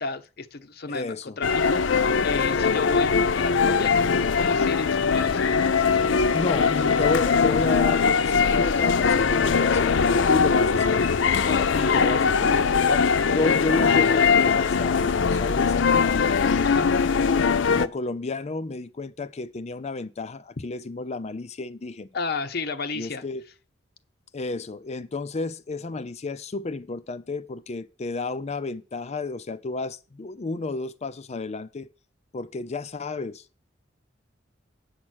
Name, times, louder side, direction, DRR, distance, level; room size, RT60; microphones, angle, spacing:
voice 1, 0.0-6.2 11.5-12.2 16.6-16.9 22.1-23.2, left 4 dB, 55° left, 0.8 m, -33 dB
voice 2, 0.9-1.4 6.3-11.1 11.7-16.9 17.5-22.1 22.9-23.5 24.3-31.9 32.3-33.4, left 3 dB, 35° left, 0.5 m, -32 dB
sound 1, 1.4-17.9, left 5 dB, 90° left, 0.5 m, -21 dB
8.7 x 6.0 x 6.3 m
head